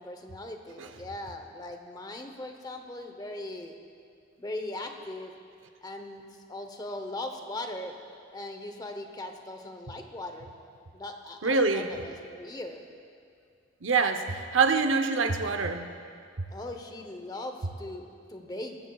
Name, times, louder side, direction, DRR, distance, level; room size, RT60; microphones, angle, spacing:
voice 1, 0.0-3.8 4.4-5.3 5.8-6.2 6.5-8.0 8.3-10.5 10.9-12.8 16.5-18.8, left 1 dB, 20° left, 5 dB, 0.8 m, -39 dB
voice 2, 11.4-11.9 13.8-15.9, right 4 dB, 90° right, 7 dB, 0.8 m, -25 dB
18.5 x 15.0 x 2.3 m, 2.3 s
head